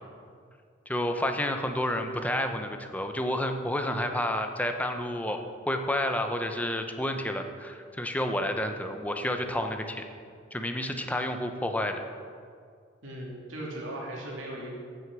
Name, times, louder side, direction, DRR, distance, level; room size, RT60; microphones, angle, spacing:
voice 1, 0.9-5.4 5.7-10.0 10.5-12.0, left 1 dB, 10° left, 5 dB, 0.8 m, -30 dB
voice 2, 13.0-14.8, right 1 dB, 80° right, -2 dB, 2.9 m, -38 dB
15.0 x 6.3 x 6.2 m, 2.2 s
head